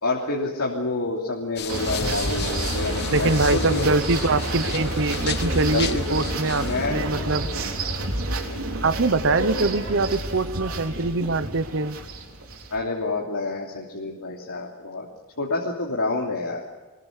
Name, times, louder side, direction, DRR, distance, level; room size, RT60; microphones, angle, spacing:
voice 1, 0.0-3.9 5.7-6.2 6.6-7.4 8.4-8.6 12.7-15.1 15.4-16.6, left 2 dB, 85° left, -2 dB, 3.0 m, -28 dB
sound 1, 1.6-6.9, left 7 dB, 50° left, 1.1 m, -34 dB
sound 2, 1.7-12.8, right 2 dB, 75° right, 3.5 m, -29 dB
voice 2, 3.1-7.5 8.8-12.0, right 3 dB, 55° right, 14 dB, 1.0 m, -23 dB
24.5 x 21.0 x 6.8 m, 1.2 s
head